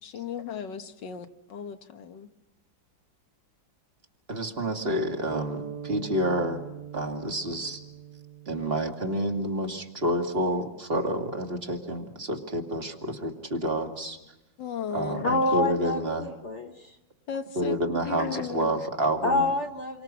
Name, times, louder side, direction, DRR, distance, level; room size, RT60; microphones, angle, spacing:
voice 1, 0.0-2.3 14.6-15.4 17.3-18.9, left 8 dB, 70° left, 7 dB, 1.9 m, -36 dB
voice 2, 4.3-6.6 6.9-7.8 8.5-14.2 14.9-16.3 17.6-19.5, right 1 dB, 30° right, 3 dB, 2.3 m, -29 dB
sound 1, 5.3-9.6, right 7 dB, 60° right, 1.7 m, -41 dB
voice 3, 15.2-16.9 19.2-20.0, left 2 dB, 40° left, 3 dB, 1.5 m, -27 dB
29.5 x 24.5 x 6.1 m, 0.93 s
omnidirectional pair, 2.0 m